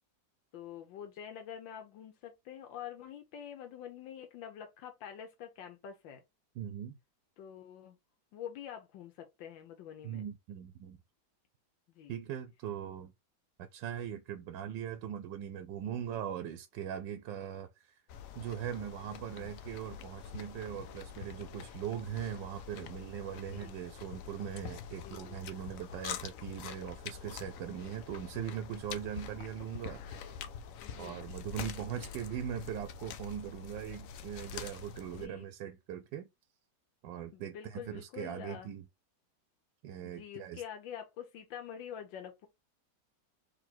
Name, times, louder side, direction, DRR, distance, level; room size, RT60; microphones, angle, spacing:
voice 1, 0.5-6.2 7.4-8.0 8.3-10.2 11.9-12.2 15.8-15.9 19.4-19.5 23.5-23.7 25.0-25.4 30.8-31.2 35.2-35.5 37.3-38.7 40.0-42.5, left 9 dB, 90° left, 1.5 m, -46 dB
voice 2, 6.6-7.0 10.0-11.0 12.1-13.1 13.6-18.0 18.4-30.2 30.9-36.3 37.0-38.9 39.8-40.6, right 9 dB, 80° right, 1.2 m, -40 dB
sound 1, 18.1-35.3, left 8 dB, 70° left, 0.8 m, -45 dB
4.0 x 3.0 x 4.3 m
omnidirectional pair, 2.0 m